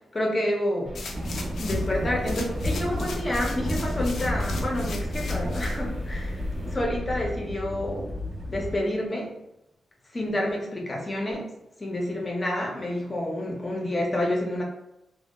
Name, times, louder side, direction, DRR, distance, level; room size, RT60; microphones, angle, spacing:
voice 1, 0.1-0.9 1.6-6.4 6.7-8.1 8.5-9.3 10.1-11.5 11.8-14.6, left 1 dB, 30° left, 0 dB, 0.6 m, -28 dB
sound 1, 0.8-7.3, equal, 10° right, 0.7 m, -35 dB
sound 2, 0.9-1.9 2.2-5.8 6.3-6.4, left 4 dB, 70° left, 0.3 m, -40 dB
sound 3, 1.1-8.8, left 1 dB, 45° right, 0.5 m, -32 dB
2.1 x 2.1 x 2.8 m, 0.85 s
cardioid pair, 75°, 0 cm